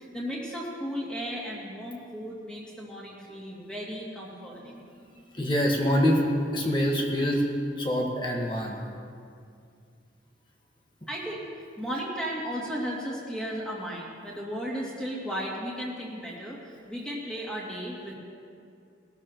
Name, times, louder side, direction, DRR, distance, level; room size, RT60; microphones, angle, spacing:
voice 1, 0.0-4.8 11.1-11.5 11.8-18.1, equal, 5° left, -5 dB, 2.4 m, -35 dB
voice 2, 4.6-7.5 7.8-8.8, equal, 25° left, -1 dB, 1.6 m, -26 dB
21.0 x 12.5 x 3.0 m, 2.3 s
head